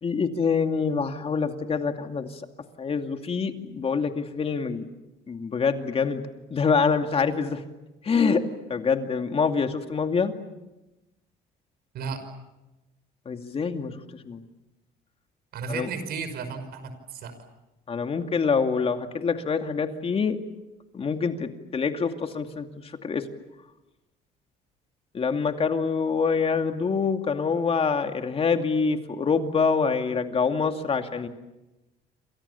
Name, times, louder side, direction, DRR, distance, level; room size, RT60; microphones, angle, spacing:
voice 1, 0.0-2.4 2.8-4.9 5.3-6.2 6.5-7.6 8.0-8.4 8.7-10.3 13.3-13.9 14.2-14.4 15.7-15.9 17.9-20.4 20.9-22.7 23.0-23.2 25.1-31.3, left 5 dB, 35° left, 6 dB, 2.4 m, -25 dB
voice 2, 15.5-17.3, right 5 dB, 70° right, 10 dB, 5.7 m, -34 dB
28.5 x 27.5 x 7.0 m, 1.0 s
cardioid pair, 110°, 17 cm